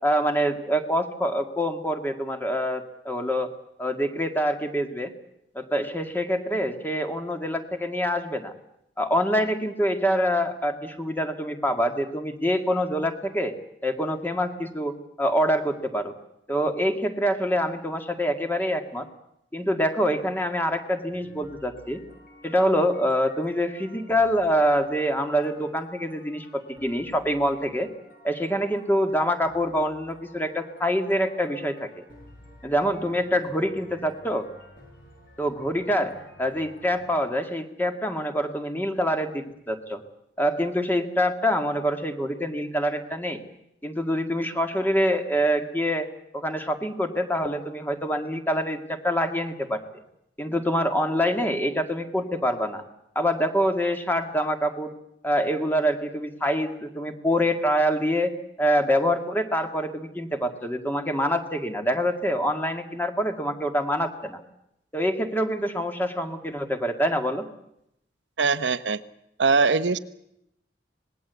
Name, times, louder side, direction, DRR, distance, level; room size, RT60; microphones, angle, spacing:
voice 1, 0.0-3.5 3.8-5.1 5.5-8.5 9.0-13.5 13.8-16.1 16.5-19.1 19.5-22.0 22.4-27.9 28.2-32.0 32.6-34.5 35.4-40.0 40.4-43.4 43.8-46.1 46.3-49.8 50.4-52.8 53.2-54.9 55.2-64.4 64.9-67.5, equal, 10° left, 6 dB, 1.9 m, -25 dB
sound 1, 21.1-37.1, left 1 dB, 50° left, 6.2 m, -52 dB
voice 2, 68.4-69.0 69.4-70.0, right 4 dB, 85° right, 11 dB, 1.0 m, -21 dB
26.0 x 20.0 x 8.1 m, 0.80 s
head